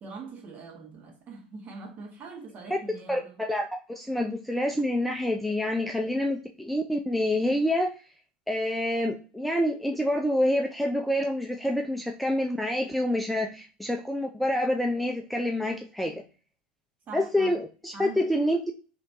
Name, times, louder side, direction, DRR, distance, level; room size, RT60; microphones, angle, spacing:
voice 1, 0.0-3.4 17.1-17.5 17.9-18.2, right 4 dB, 35° right, 1.4 m, -43 dB
voice 2, 3.1-7.9 8.5-16.2 17.1-18.6, left 1 dB, ahead, 0.5 m, -27 dB
3.2 x 2.9 x 2.7 m
figure-of-eight pair, 80°, 5 cm